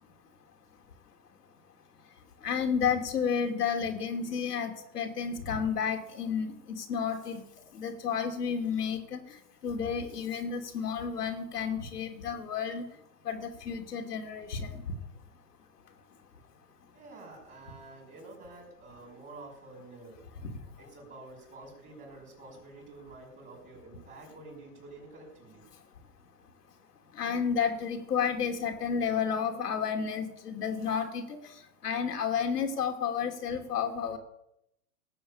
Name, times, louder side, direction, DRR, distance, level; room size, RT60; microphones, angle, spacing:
voice 1, 2.4-7.4 7.7-9.2 9.6-12.8 13.2-14.8 20.4-20.5 27.2-31.4 31.8-34.2, left 7 dB, 80° left, 4 dB, 3.0 m, -31 dB
voice 2, 16.9-20.2 20.8-25.6, right 2 dB, 20° right, -2 dB, 5.6 m, -49 dB
18.0 x 7.2 x 8.5 m, 0.81 s
hypercardioid pair, 115°, 46 cm